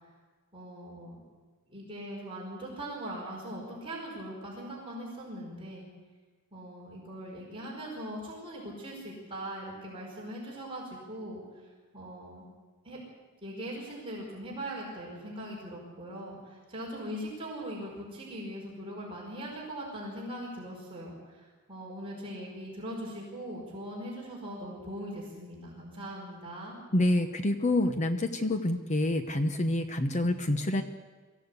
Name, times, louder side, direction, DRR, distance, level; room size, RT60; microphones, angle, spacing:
voice 1, 0.5-1.2 1.7-5.9 6.5-11.4 11.9-12.4 12.8-13.0 13.4-26.8, right 1 dB, 25° right, -3 dB, 5.0 m, -40 dB
voice 2, 26.9-30.8, left 1 dB, 35° left, 7 dB, 1.0 m, -27 dB
23.5 x 15.5 x 8.3 m, 1.4 s
head